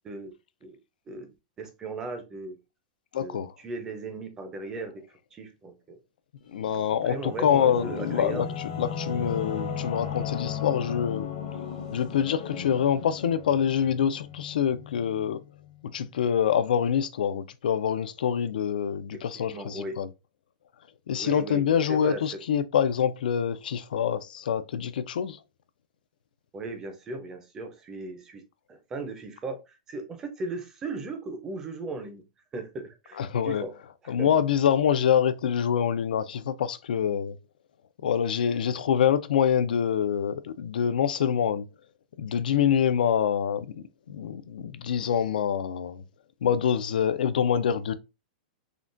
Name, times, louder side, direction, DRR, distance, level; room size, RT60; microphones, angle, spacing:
voice 1, 1.6-2.6 3.2-6.0 7.0-8.5 19.1-20.0 21.2-22.2 26.5-28.4 28.7-32.2 32.5-33.7 34.0-34.3, right 3 dB, 10° right, 0.4 m, -37 dB
voice 2, 3.1-3.5 6.5-11.3 11.9-15.4 15.9-20.1 21.1-25.4 33.2-33.7 34.1-37.4 38.0-41.7 42.2-43.7 44.1-46.0 46.4-47.9, left 8 dB, 90° left, 0.3 m, -25 dB
Singing / Musical instrument, 6.6-15.8, left 7 dB, 55° left, 0.9 m, -36 dB
3.7 x 2.1 x 2.4 m
supercardioid pair, 180°, 5 cm